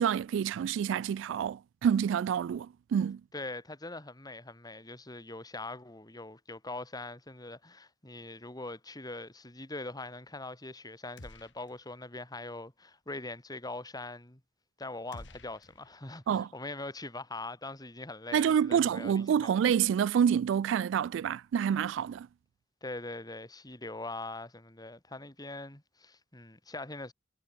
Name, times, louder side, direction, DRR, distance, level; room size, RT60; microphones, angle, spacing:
voice 1, 0.0-3.2 16.3-16.5 18.3-22.3, right 8 dB, 90° right, 0.3 m, -28 dB
voice 2, 3.3-14.4 14.8-19.5 22.8-27.1, left 2 dB, 20° left, 3.1 m, -42 dB
sound 1, 11.2-12.1 12.3-12.5 15.1-16.4, left 1 dB, 70° left, 3.1 m, -52 dB
head